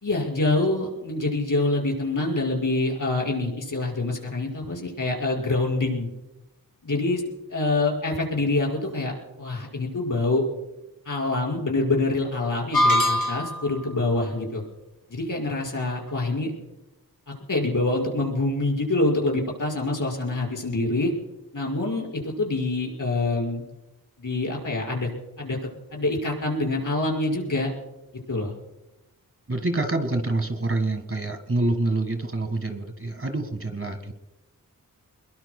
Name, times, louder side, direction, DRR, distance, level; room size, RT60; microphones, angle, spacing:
voice 1, 0.0-6.1 6.8-7.2 7.5-10.4 11.0-14.6 15.1-16.5 17.3-21.1 21.5-23.6 24.2-25.1 25.4-25.6 25.9-27.7 28.3-28.5, left 2 dB, 60° left, -1 dB, 5.3 m, -26 dB
sound 1, 12.7-13.7, left 1 dB, 80° left, 3.7 m, -21 dB
voice 2, 29.5-34.1, right 2 dB, 40° right, 8 dB, 1.7 m, -26 dB
24.0 x 21.5 x 2.2 m, 0.97 s
wide cardioid pair, 65°, 35 cm